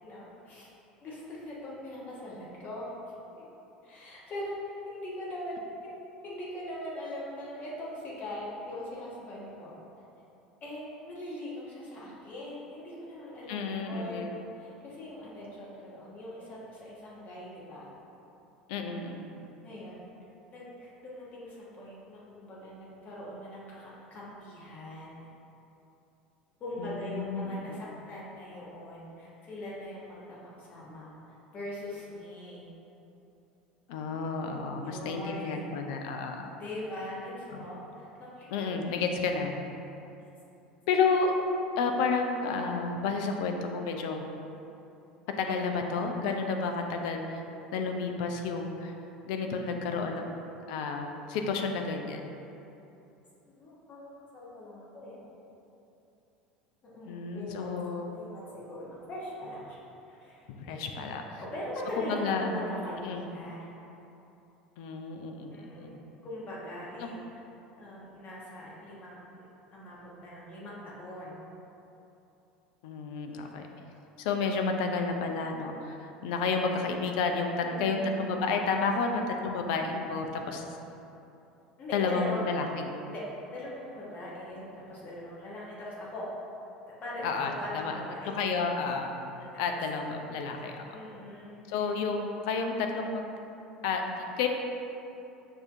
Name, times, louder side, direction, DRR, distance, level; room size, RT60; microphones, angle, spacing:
voice 1, 0.0-0.7 1.0-2.9 3.4-3.5 3.8-9.8 10.6-17.9 19.6-20.0 20.5-25.3 26.6-31.1 31.5-32.7 34.8-35.8 36.5-38.7 40.2-40.3 53.4-55.2 56.8-57.7 58.1-59.8 60.1-60.8 61.4-63.7 65.5-67.4 67.8-71.4 77.6-78.2 81.8-82.5 83.1-86.3 87.0-88.4 89.3-89.8 90.9-91.9, left 1 dB, 35° left, -7 dB, 1.1 m, -41 dB
voice 2, 13.5-14.3 18.7-19.4 26.8-27.8 33.9-36.5 38.5-39.6 40.9-41.3 41.8-44.3 45.4-47.4 47.7-48.9 49.3-52.3 57.1-58.1 60.5-61.4 62.0-62.6 63.0-63.3 64.8-65.9 67.0-67.2 72.8-73.7 74.2-80.6 81.9-82.9 87.2-87.9 88.3-89.3 89.6-91.0 91.7-93.2 93.8-94.0 94.4-94.5, left 4 dB, 60° left, 4 dB, 0.4 m, -31 dB
6.6 x 2.7 x 2.5 m, 2.9 s
figure-of-eight pair, 70°, 5 cm